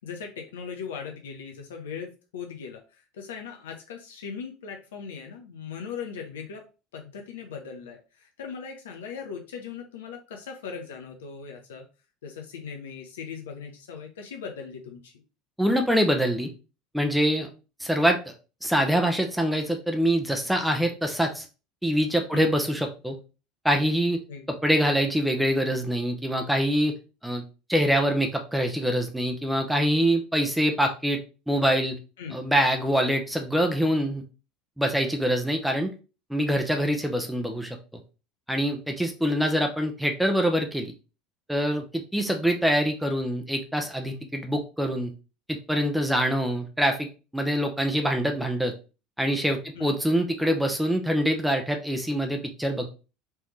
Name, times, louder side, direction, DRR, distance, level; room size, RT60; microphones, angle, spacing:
voice 1, 0.0-6.6 6.9-11.8 12.2-15.2 22.3-22.5 24.3-24.5 32.2-32.4 49.8-49.9, left 6 dB, 70° left, 3 dB, 0.7 m, -39 dB
voice 2, 15.6-16.5 16.9-17.5 17.8-18.2 18.6-21.5 21.8-23.2 23.6-24.2 24.5-26.9 27.2-27.4 27.7-31.2 31.5-32.0 32.3-34.2 34.8-35.9 36.3-37.8 38.5-40.9 41.5-45.1 45.5-47.1 47.3-48.7 49.2-52.9, equal, 5° right, 4 dB, 0.8 m, -24 dB
4.5 x 3.3 x 3.2 m, 0.32 s
figure-of-eight pair, 70°, 0 cm